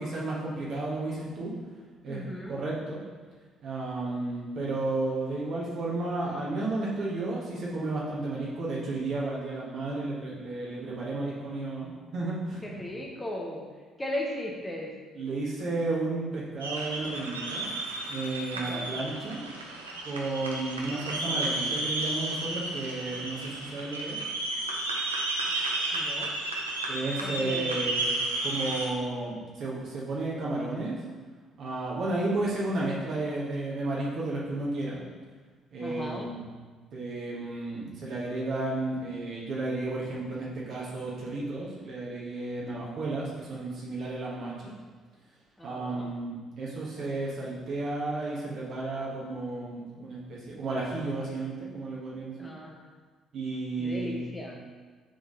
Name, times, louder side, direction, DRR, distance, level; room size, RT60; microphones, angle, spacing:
voice 1, 0.0-1.5 2.0-3.0 3.6-12.6 15.1-17.7 18.1-19.4 20.0-24.2 26.9-28.1 28.4-31.0 31.6-35.0 35.7-36.4 36.9-44.7 45.6-52.3 53.3-54.3, right 2 dB, 55° right, -6 dB, 1.5 m, -33 dB
voice 2, 2.1-2.6 12.6-13.6 14.0-14.9 18.5-18.9 25.9-26.3 27.2-27.8 35.8-36.3 45.6-46.1 52.4-52.8 53.8-54.6, left 1 dB, 15° left, -1 dB, 1.1 m, -37 dB
sound 1, 16.6-28.9, right 2 dB, 85° right, 0.6 m, -32 dB
6.6 x 4.0 x 4.0 m, 1.4 s
figure-of-eight pair, 45°, 0 cm